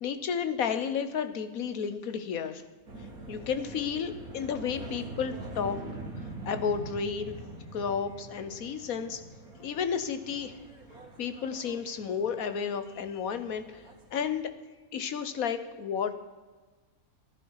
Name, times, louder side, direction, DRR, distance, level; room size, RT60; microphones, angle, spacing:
voice 1, 0.0-2.6 3.3-5.8 6.5-7.4 7.7-9.2 9.6-10.6 11.2-13.8 14.1-14.5 14.9-16.1, left 7 dB, 75° left, 10 dB, 1.5 m, -32 dB
sound 1, 2.9-14.4, right 2 dB, 85° right, 2.5 m, -44 dB
15.0 x 12.0 x 4.8 m, 1.3 s
omnidirectional pair, 1.5 m